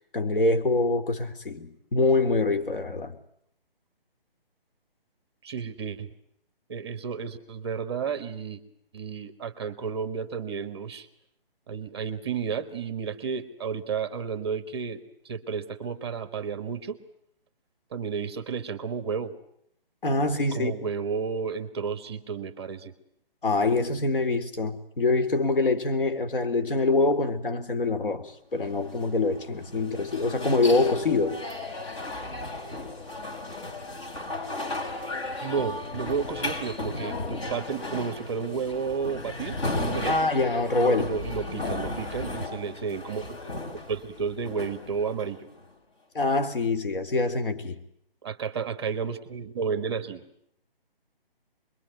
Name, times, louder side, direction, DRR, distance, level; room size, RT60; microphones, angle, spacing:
voice 1, 0.1-3.2 20.0-20.7 23.4-31.4 40.1-41.1 46.1-47.8, left 3 dB, 65° left, 8 dB, 3.8 m, -25 dB
voice 2, 5.4-6.1 6.7-8.6 8.9-11.1 11.7-15.0 15.2-17.0 17.9-19.3 20.5-22.9 35.4-40.1 40.7-43.6 43.9-45.5 48.2-50.2, right 6 dB, 25° right, 10 dB, 1.4 m, -32 dB
sound 1, 28.6-45.7, left 2 dB, 30° left, 4.5 m, -35 dB
27.5 x 22.5 x 9.4 m, 0.75 s
hypercardioid pair, 165°, 29 cm